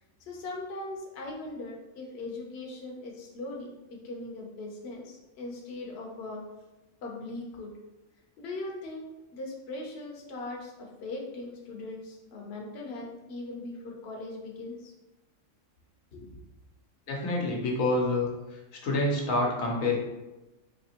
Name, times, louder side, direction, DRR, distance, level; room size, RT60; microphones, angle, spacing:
voice 1, 0.3-6.4 7.0-7.7 8.4-9.1 9.3-14.9 16.1-16.3, left 2 dB, 60° left, -1 dB, 0.9 m, -39 dB
voice 2, 17.1-20.0, left 2 dB, 90° left, -2 dB, 1.2 m, -28 dB
4.2 x 2.8 x 2.8 m, 1.0 s
omnidirectional pair, 1.4 m